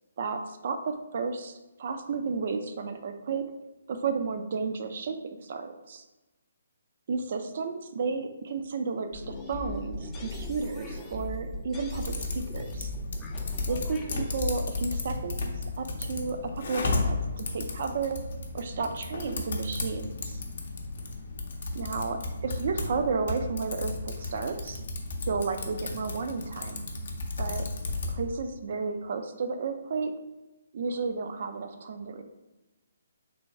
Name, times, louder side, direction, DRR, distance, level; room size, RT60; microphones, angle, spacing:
voice 1, 0.2-3.4 3.9-6.0 7.1-12.9 13.7-15.5 15.8-18.2 18.5-20.4 21.7-24.8 25.3-26.8 27.4-27.7 28.1-30.1 30.7-32.2, right 4 dB, 55° right, 7 dB, 0.4 m, -32 dB
sound 1, 9.1-14.5, left 2 dB, 15° left, 0.4 m, -38 dB
Typing, 12.0-28.2, left 2 dB, 60° left, 0.6 m, -34 dB
3.3 x 2.2 x 4.0 m, 1.1 s
figure-of-eight pair, 140°, 0 cm